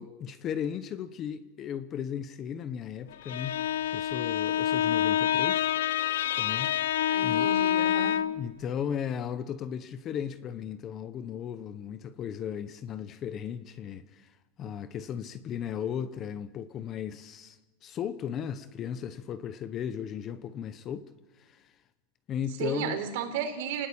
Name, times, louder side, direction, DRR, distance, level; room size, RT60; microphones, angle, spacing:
voice 1, 0.0-3.6 3.9-5.7 6.4-6.8 7.2-7.6 8.3-21.1 21.4-21.7 22.3-23.0, left 8 dB, 20° left, 0.8 m, -36 dB
Bowed string instrument, 3.1-8.5, left 11 dB, 80° left, 1.1 m, -27 dB
voice 2, 7.1-8.2 22.6-23.9, right 8 dB, 55° right, 4.2 m, -34 dB
29.0 x 19.0 x 8.6 m
supercardioid pair, 175°, 0 cm